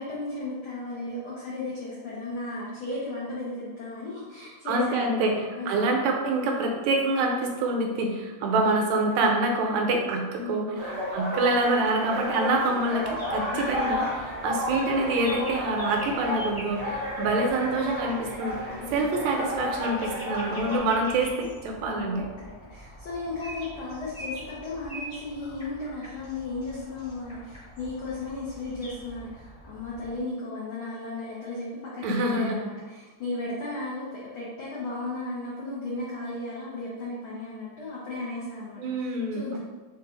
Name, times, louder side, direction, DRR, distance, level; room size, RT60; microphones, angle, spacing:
voice 1, 0.0-5.3 5.5-5.9 10.4-10.9 13.5-14.0 18.8-19.0 20.4-20.6 21.9-39.6, left 2 dB, 90° left, -6 dB, 1.1 m, -35 dB
voice 2, 4.7-5.3 5.7-18.5 18.9-22.2 32.0-32.6 38.8-39.6, right 2 dB, 80° right, 2 dB, 1.7 m, -26 dB
sound 1, 10.8-20.8, equal, 55° right, 0.5 m, -32 dB
sound 2, 13.0-30.2, equal, 55° left, 0.5 m, -44 dB
4.6 x 2.4 x 3.9 m, 1.3 s
omnidirectional pair, 3.3 m